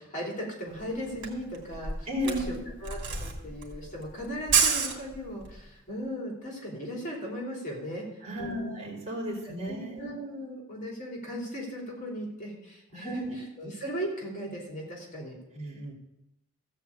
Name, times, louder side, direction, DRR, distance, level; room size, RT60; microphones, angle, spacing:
voice 1, 0.0-2.6 2.8-8.1 8.4-8.8 9.4-13.2 13.6-15.9, equal, 40° left, -2 dB, 3.3 m, -37 dB
Camera, 0.8-5.6, right 5 dB, 60° right, 2.7 m, -29 dB
voice 2, 2.1-2.7 8.2-10.1 12.9-13.4, equal, 30° right, -2 dB, 3.7 m, -34 dB
14.5 x 4.9 x 8.4 m, 0.90 s
head